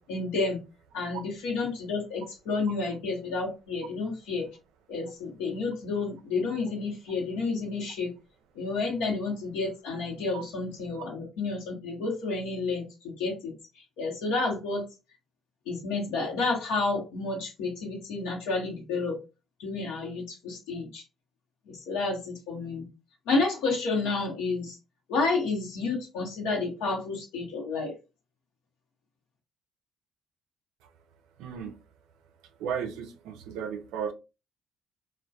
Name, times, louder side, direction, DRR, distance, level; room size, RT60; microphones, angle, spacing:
voice 1, 0.1-0.6 0.9-4.5 4.9-8.1 8.5-13.5 14.0-14.8 15.7-19.2 19.6-21.0 21.7-22.9 23.3-24.8 25.1-27.9, left 3 dB, 85° left, 0.8 m, -30 dB
voice 2, 31.4-31.7 32.6-34.1, right 7 dB, 80° right, 0.4 m, -34 dB
2.2 x 2.1 x 2.6 m
supercardioid pair, 70°, 0 cm